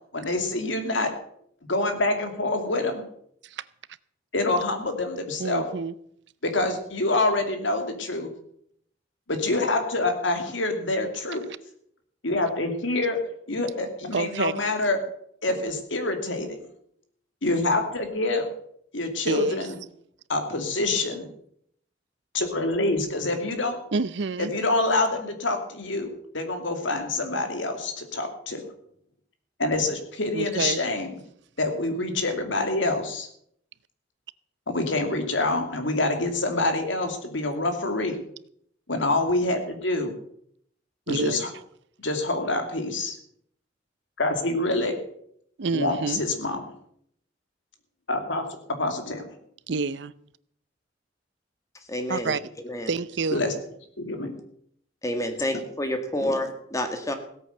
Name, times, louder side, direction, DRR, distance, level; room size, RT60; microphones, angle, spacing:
voice 1, 0.1-1.1 1.7-3.0 4.3-5.6 6.4-8.3 9.3-11.4 12.2-13.2 13.5-15.0 15.4-16.6 17.4-18.5 18.9-19.8 20.3-21.3 22.3-23.8 24.4-28.7 29.6-31.2 31.6-33.3 34.7-38.2 38.9-40.2 41.1-41.5 42.0-43.2 44.2-45.0 45.7-46.7 48.1-49.3 53.3-53.5 54.0-54.4, left 2 dB, 80° left, 2.5 m, -26 dB
voice 2, 5.4-5.9 14.1-14.5 19.3-19.6 23.9-24.5 30.3-30.8 41.1-41.4 45.6-46.2 49.7-50.1 52.1-52.4 52.9-53.4, right 4 dB, 65° right, 0.6 m, -27 dB
voice 3, 51.9-52.4 52.6-52.9 55.0-57.1, left 1 dB, 15° left, 1.8 m, -28 dB
16.5 x 8.7 x 6.7 m
head